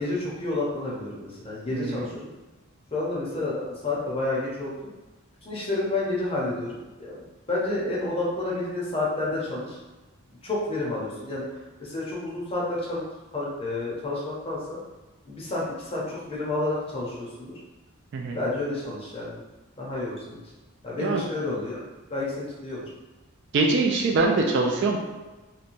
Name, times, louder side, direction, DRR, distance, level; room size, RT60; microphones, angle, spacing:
voice 1, 0.0-2.3 2.9-4.9 5.4-7.2 7.5-9.8 10.4-11.4 11.8-13.0 13.3-14.8 15.3-17.5 18.3-19.4 19.8-20.4 20.8-21.8 22.1-22.9, left 2 dB, 25° left, -6 dB, 0.6 m, -30 dB
voice 2, 1.7-2.0 18.1-18.4 21.0-21.2 23.5-25.0, right 3 dB, 55° right, 0 dB, 0.3 m, -23 dB
2.9 x 2.1 x 2.5 m, 1.2 s
head